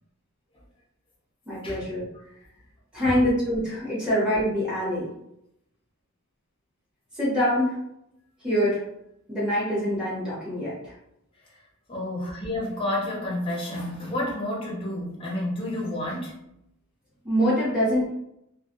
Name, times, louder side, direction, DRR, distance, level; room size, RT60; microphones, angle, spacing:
voice 1, 1.5-2.1 2.9-5.1 7.1-7.8 8.4-8.8 9.3-10.9 17.2-18.1, equal, 5° right, -10 dB, 1.0 m, -25 dB
voice 2, 11.9-16.4, left 1 dB, 25° left, -4 dB, 0.7 m, -30 dB
2.4 x 2.2 x 2.5 m, 0.80 s
head